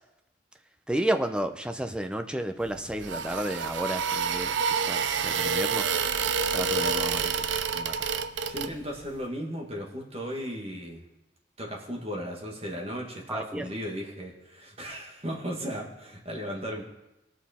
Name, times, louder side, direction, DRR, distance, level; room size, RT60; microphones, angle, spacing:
voice 1, 0.9-5.9 6.5-7.5 7.7-7.9 13.3-13.7, right 1 dB, 5° right, 6 dB, 0.5 m, -32 dB
sound 1, 2.6-9.1, right 6 dB, 80° right, 0.5 m, -28 dB
voice 2, 8.5-11.0 11.6-16.8, equal, 30° right, 0 dB, 1.7 m, -36 dB
18.0 x 6.1 x 4.3 m, 0.95 s
head